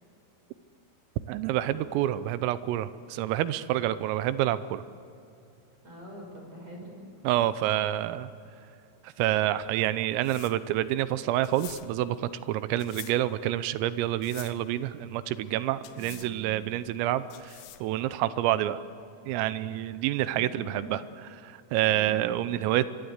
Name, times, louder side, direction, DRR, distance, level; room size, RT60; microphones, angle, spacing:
voice 1, 1.3-4.8 7.3-8.3 9.0-12.2 12.5-18.8 19.3-21.0 21.3-22.9, right 13 dB, 85° right, 14 dB, 3.5 m, -28 dB
voice 2, 5.8-7.1 15.9-16.4 20.3-20.8, right 1 dB, 30° right, 1 dB, 6.9 m, -44 dB
sound 1, 9.6-18.0, left 13 dB, 80° left, 2.3 m, -49 dB
27.0 x 23.0 x 8.1 m, 2.7 s
omnidirectional pair, 6.0 m